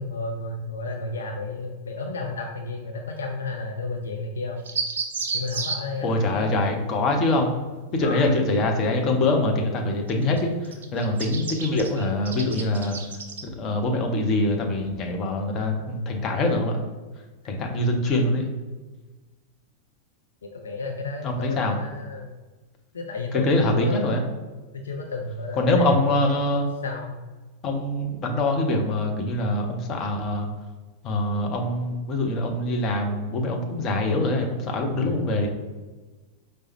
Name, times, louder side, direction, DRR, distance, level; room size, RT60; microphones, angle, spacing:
voice 1, 0.0-4.6 5.3-6.5 8.0-8.4 15.6-15.9 20.5-22.3 22.9-24.1 24.8-26.2 26.8-27.1 35.0-35.2, left 2 dB, 65° left, 2 dB, 0.3 m, -32 dB
sound 1, 4.7-5.8 10.1-10.4 10.6-13.4, right 5 dB, 65° right, 0.4 m, -31 dB
voice 2, 6.0-7.6 7.9-13.0 13.5-16.8 17.4-18.5 21.2-21.8 23.3-24.2 25.6-26.7 27.6-30.5 31.0-35.5, left 2 dB, 35° left, 2 dB, 0.6 m, -24 dB
4.7 x 2.1 x 2.9 m, 1.3 s
figure-of-eight pair, 90°, 0 cm